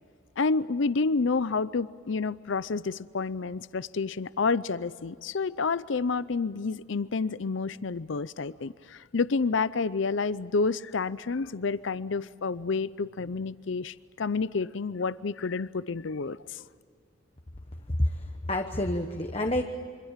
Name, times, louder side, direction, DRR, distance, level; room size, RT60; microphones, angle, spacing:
voice 1, 0.4-16.6, left 4 dB, 70° left, 17 dB, 0.6 m, -29 dB
voice 2, 17.9-19.6, left 1 dB, 30° left, 4 dB, 1.1 m, -28 dB
26.5 x 25.5 x 7.4 m, 2.2 s
head